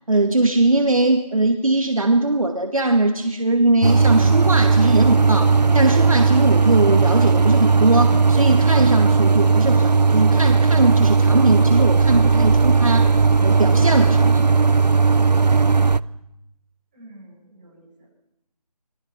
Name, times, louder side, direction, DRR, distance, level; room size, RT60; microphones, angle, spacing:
voice 1, 0.1-14.5, right 2 dB, 55° right, 4 dB, 2.2 m, -20 dB
sound 1, 3.8-16.0, right 4 dB, 80° right, 0.9 m, -16 dB
voice 2, 16.9-18.1, right 1 dB, 15° right, -4 dB, 7.2 m, -47 dB
26.5 x 22.5 x 6.0 m, 0.85 s
figure-of-eight pair, 165°, 21 cm